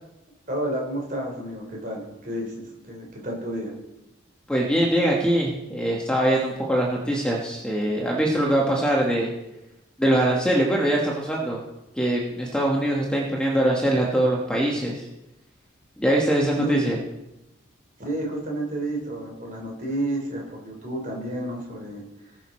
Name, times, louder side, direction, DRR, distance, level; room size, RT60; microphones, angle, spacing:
voice 1, 0.5-3.7 16.5-16.8 18.0-22.4, right 1 dB, 40° right, -1 dB, 3.4 m, -31 dB
voice 2, 4.5-9.3 10.0-11.6 11.9-15.1 16.0-17.0, right 1 dB, 5° left, -2 dB, 1.2 m, -22 dB
19.0 x 6.5 x 4.3 m, 0.94 s
head